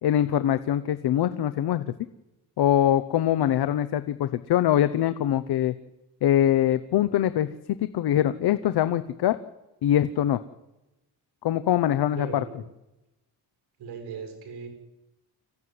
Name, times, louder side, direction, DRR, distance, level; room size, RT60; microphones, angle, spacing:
voice 1, 0.0-1.9 2.6-5.7 6.2-7.5 7.8-9.4 9.8-10.4 11.4-12.3, left 11 dB, 70° left, 13 dB, 0.9 m, -23 dB
voice 2, 12.1-12.6 13.8-14.7, right 5 dB, 70° right, 6 dB, 7.3 m, -37 dB
26.0 x 15.5 x 9.7 m, 0.99 s
cardioid pair, 140°, 40 cm